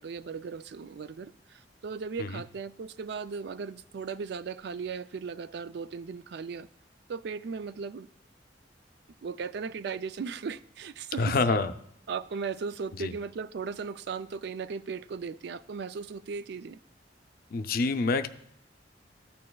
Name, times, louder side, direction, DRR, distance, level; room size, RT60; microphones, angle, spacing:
voice 1, 0.0-6.7 7.1-8.1 9.2-11.4 12.1-16.8, right 5 dB, 65° right, 0.4 m, -37 dB
voice 2, 11.2-11.7 13.0-13.1 17.5-18.3, left 3 dB, 55° left, 0.5 m, -26 dB
13.5 x 8.6 x 2.3 m
head